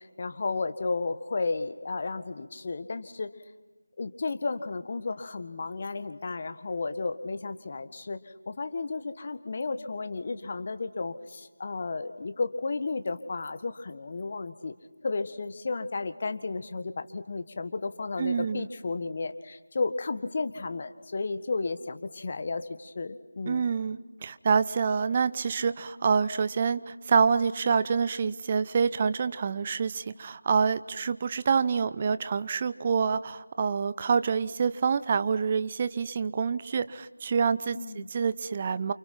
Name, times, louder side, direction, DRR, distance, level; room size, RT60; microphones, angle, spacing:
voice 1, 0.0-3.3 4.0-14.7 15.0-23.7 37.7-38.1, left 3 dB, 35° left, 10 dB, 1.6 m, -33 dB
voice 2, 18.2-18.7 23.5-38.9, right 5 dB, 25° right, 13 dB, 0.8 m, -27 dB
30.0 x 29.0 x 6.0 m, 1.2 s
figure-of-eight pair, 165°, 0 cm